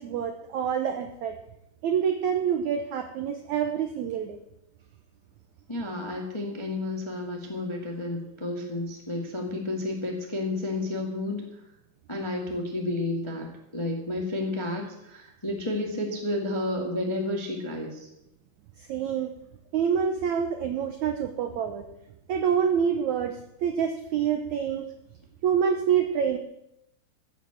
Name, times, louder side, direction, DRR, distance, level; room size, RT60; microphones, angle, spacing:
voice 1, 0.0-1.3 1.8-4.4 18.8-19.3 19.7-21.9 22.3-24.9 25.4-26.4, right 7 dB, 85° right, 6 dB, 1.7 m, -27 dB
voice 2, 5.7-11.4 12.1-18.1, left 2 dB, 20° left, 0 dB, 0.7 m, -31 dB
14.5 x 7.2 x 7.6 m, 0.83 s
omnidirectional pair, 4.5 m